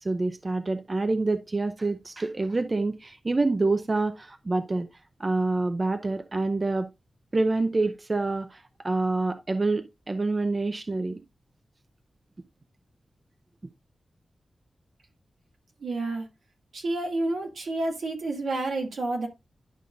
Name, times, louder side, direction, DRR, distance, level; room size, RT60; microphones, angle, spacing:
voice 1, 0.0-4.9 5.2-6.9 7.3-11.2, right 3 dB, 35° right, 0.6 m, -27 dB
voice 2, 15.8-16.3 16.7-19.3, right 2 dB, 90° right, 2.1 m, -29 dB
11.0 x 5.5 x 2.4 m
wide cardioid pair, 100°, 0 cm